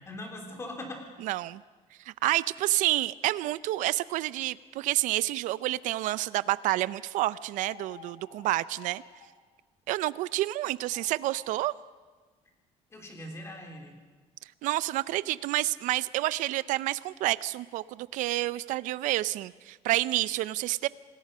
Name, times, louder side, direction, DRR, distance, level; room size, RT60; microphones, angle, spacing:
voice 1, 0.0-1.1 12.9-14.0, left 1 dB, 20° left, 3 dB, 3.6 m, -41 dB
voice 2, 1.2-1.6 2.0-9.0 9.9-11.7 14.6-20.9, right 16 dB, 75° right, 18 dB, 0.6 m, -29 dB
sound 1, 7.5-9.4 10.7-11.7, left 7 dB, 85° left, 3.0 m, -52 dB
27.5 x 19.0 x 5.5 m, 1.4 s
cardioid pair, 165°, 13 cm